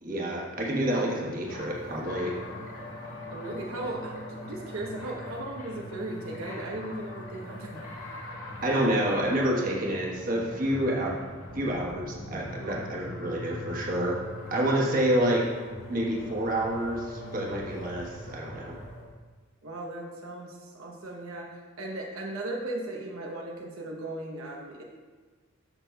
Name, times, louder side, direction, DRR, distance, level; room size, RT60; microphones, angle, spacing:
voice 1, 0.0-2.3 8.6-11.2 11.5-14.2 14.5-15.5 15.9-18.7, right 1 dB, 40° right, -2 dB, 1.2 m, -28 dB
sound 1, 1.4-19.0, left 1 dB, 90° left, 2.0 m, -42 dB
voice 2, 3.3-7.8 12.6-13.1 19.6-24.8, right 1 dB, 80° right, 0 dB, 0.9 m, -37 dB
14.0 x 6.0 x 2.3 m, 1.4 s
head